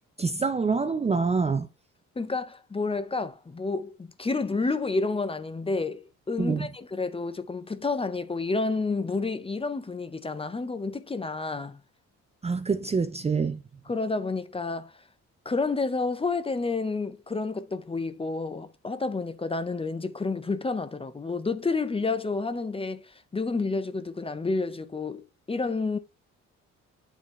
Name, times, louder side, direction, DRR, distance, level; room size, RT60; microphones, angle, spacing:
voice 1, 0.2-1.7 6.4-6.7 12.4-13.6, right 4 dB, 20° right, 0.5 m, -26 dB
voice 2, 2.2-11.8 13.9-14.9 15.4-26.0, left 3 dB, 20° left, 0.6 m, -30 dB
8.8 x 3.9 x 3.1 m
cardioid pair, 90°, 30 cm